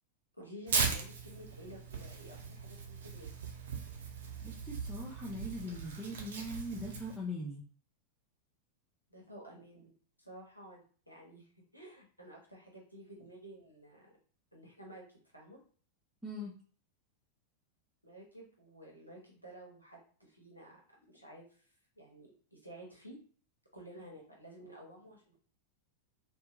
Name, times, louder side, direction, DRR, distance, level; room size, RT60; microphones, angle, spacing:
voice 1, 0.4-3.3 9.1-9.9 10.2-14.1 14.5-15.0 15.3-15.6 18.0-20.8 21.1-23.2 23.7-25.4, right 1 dB, 90° right, -2 dB, 0.8 m, -52 dB
Tearing, 0.7-7.2, right 5 dB, 60° right, 0.5 m, -38 dB
voice 2, 4.4-7.6 16.2-16.5, equal, 5° right, -6 dB, 0.6 m, -41 dB
2.6 x 2.2 x 2.4 m, 0.42 s
figure-of-eight pair, 90°, 0 cm